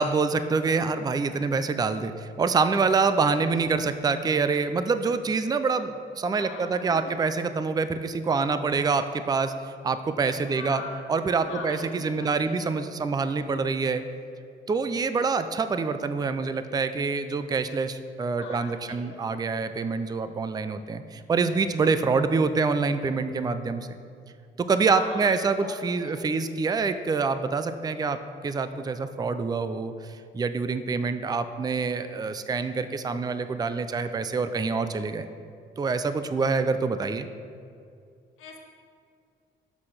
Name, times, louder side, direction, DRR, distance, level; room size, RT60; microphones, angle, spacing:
voice 1, 0.0-9.5 9.8-10.8 11.1-14.0 14.7-23.9 24.6-29.9 30.3-35.3 35.8-37.3, right 4 dB, 20° right, 10 dB, 0.4 m, -26 dB
voice 2, 6.4-7.2 10.5-11.0 11.5-12.8 18.3-19.4 24.9-26.1 38.4-38.6, left 4 dB, 85° left, 0 dB, 1.3 m, -42 dB
6.0 x 5.7 x 6.5 m, 2.4 s
cardioid pair, 90°, 20 cm